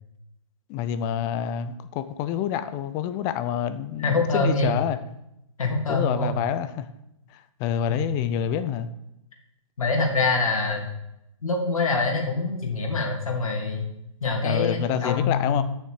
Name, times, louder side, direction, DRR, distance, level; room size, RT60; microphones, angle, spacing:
voice 1, 0.7-5.0 5.9-6.9 7.3-8.9 14.4-15.6, left 9 dB, 20° left, 11 dB, 0.5 m, -27 dB
voice 2, 4.0-4.7 5.6-6.3 7.9-8.0 9.8-10.9 11.4-13.8 14.2-15.6, left 3 dB, 85° left, 0 dB, 2.9 m, -24 dB
9.4 x 6.5 x 4.8 m, 0.82 s
hypercardioid pair, 150°, 17 cm